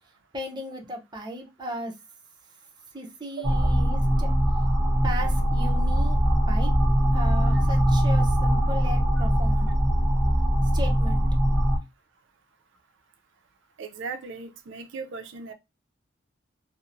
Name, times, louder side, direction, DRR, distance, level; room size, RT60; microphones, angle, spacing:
voice 1, 0.3-1.9 2.9-4.3 5.0-6.2 6.5-6.7 7.1-9.7 10.7-11.2, equal, 20° right, 0.6 m, -36 dB
sound 1, 3.4-11.8, equal, ahead, 1.0 m, -22 dB
voice 2, 3.4-3.7 13.8-15.5, right 5 dB, 65° right, 0.4 m, -37 dB
2.9 x 2.0 x 2.5 m
head